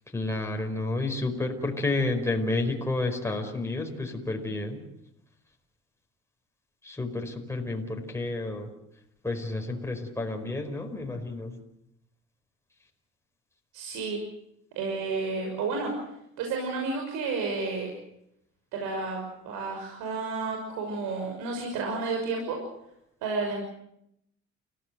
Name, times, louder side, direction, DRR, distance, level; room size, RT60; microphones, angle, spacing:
voice 1, 0.1-4.8 6.8-8.7 9.2-11.5, left 2 dB, 10° left, 2 dB, 5.0 m, -30 dB
voice 2, 13.7-14.2 14.8-15.9 16.4-17.9 18.7-22.6 23.2-23.7, right 4 dB, 85° right, 2 dB, 6.1 m, -31 dB
30.0 x 17.0 x 8.0 m, 0.79 s
cardioid pair, 105°, 30 cm